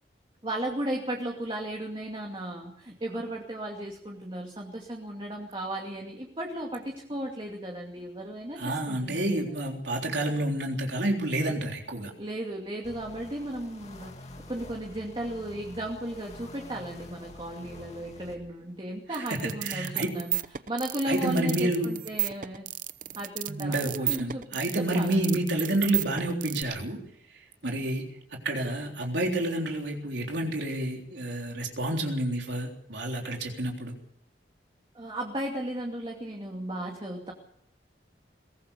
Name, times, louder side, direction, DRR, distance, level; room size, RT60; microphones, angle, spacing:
voice 1, 0.4-8.6 8.9-9.5 12.2-20.4 20.7-22.7 23.2-24.5 24.8-25.4 34.9-37.3, right 1 dB, 30° right, 0 dB, 2.5 m, -35 dB
voice 2, 8.6-12.1 19.1-20.1 21.1-22.0 23.6-27.0 27.6-34.0, right 1 dB, 75° right, 1 dB, 3.6 m, -29 dB
sound 1, 12.8-18.4, left 1 dB, 40° left, 2.5 m, -47 dB
sound 2, 19.1-26.6, right 12 dB, 45° right, 0.7 m, -33 dB
22.0 x 18.0 x 6.9 m, 0.74 s
head